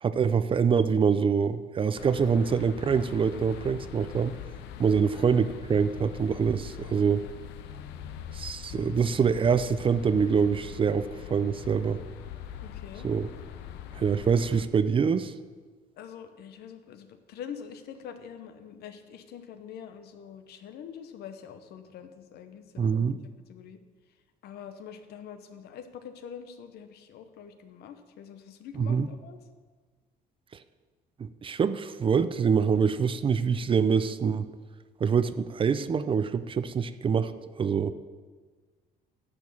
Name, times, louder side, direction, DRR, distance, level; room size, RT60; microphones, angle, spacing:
voice 1, 0.0-4.4 4.8-7.2 8.3-12.0 13.0-13.3 13.9-15.3 22.8-23.2 28.8-29.1 31.2-34.5 35.0-37.3 37.6-37.9, right 6 dB, 30° right, 13 dB, 0.5 m, -25 dB
sound 1, 2.0-14.7, left 10 dB, 90° left, 0.7 m, -42 dB
voice 2, 12.6-13.1 16.0-23.2 23.5-23.8 24.4-29.4, left 8 dB, 75° left, 8 dB, 1.0 m, -45 dB
10.5 x 6.4 x 7.1 m, 1.5 s
cardioid pair, 110°, 17 cm